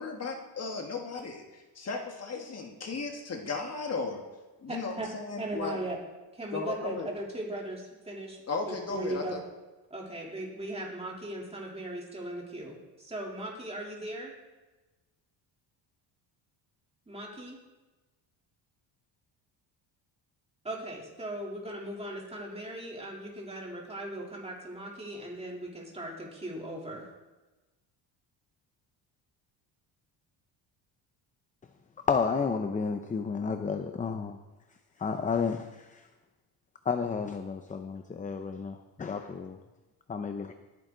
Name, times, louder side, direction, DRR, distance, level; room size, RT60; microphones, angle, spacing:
voice 1, 0.0-4.2 4.6-5.8 6.5-7.1 8.5-9.4, left 4 dB, 35° left, 2 dB, 1.6 m, -35 dB
voice 2, 4.7-5.1 5.4-6.0 6.3-8.4 8.7-9.4 9.9-14.3 17.1-17.6 20.6-27.1, right 1 dB, 15° right, -3 dB, 3.3 m, -38 dB
voice 3, 32.1-34.4 35.0-36.1 36.8-39.6 40.1-40.5, left 5 dB, 15° left, 7 dB, 0.6 m, -31 dB
19.0 x 9.3 x 3.9 m, 1.2 s
cardioid pair, 130°, 45 cm